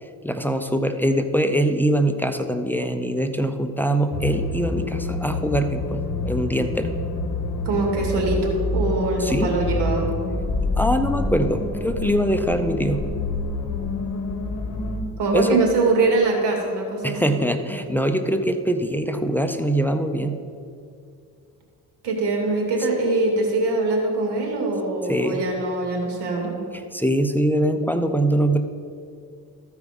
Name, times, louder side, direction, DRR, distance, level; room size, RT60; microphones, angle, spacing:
voice 1, 0.0-6.9 9.2-9.5 10.8-13.1 15.3-15.6 17.0-20.4 25.1-25.4 26.7-28.6, right 1 dB, 5° left, 7 dB, 0.5 m, -23 dB
sound 1, 4.1-15.0, left 3 dB, 45° left, 1.3 m, -27 dB
voice 2, 7.6-10.1 15.2-17.4 22.0-26.6, right 3 dB, 75° right, 0 dB, 2.3 m, -23 dB
13.5 x 4.8 x 5.3 m, 2.4 s
cardioid pair, 85°, 42 cm